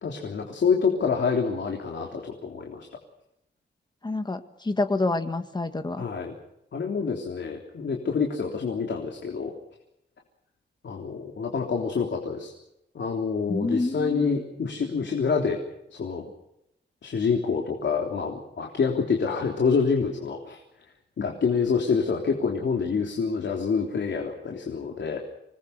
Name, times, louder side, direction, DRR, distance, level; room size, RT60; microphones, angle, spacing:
voice 1, 0.0-2.9 6.0-6.3 6.7-9.5 10.8-12.5 13.0-15.6 15.9-16.2 17.0-20.6 21.2-25.2, left 5 dB, 70° left, 1 dB, 3.5 m, -27 dB
voice 2, 4.0-6.0 13.5-14.4, left 2 dB, 20° left, 8 dB, 1.8 m, -28 dB
27.0 x 20.5 x 6.7 m, 0.83 s
wide cardioid pair, 160°, 19 cm